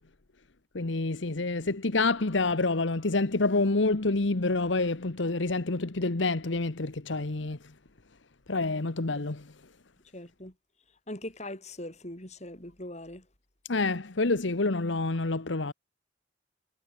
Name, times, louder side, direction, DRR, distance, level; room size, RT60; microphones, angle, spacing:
voice 1, 0.7-7.6 8.5-9.5 13.7-15.7, left 3 dB, 75° left, 1.2 m, -27 dB
voice 2, 10.1-10.5 11.1-13.3, left 1 dB, 35° left, 4.7 m, -41 dB
head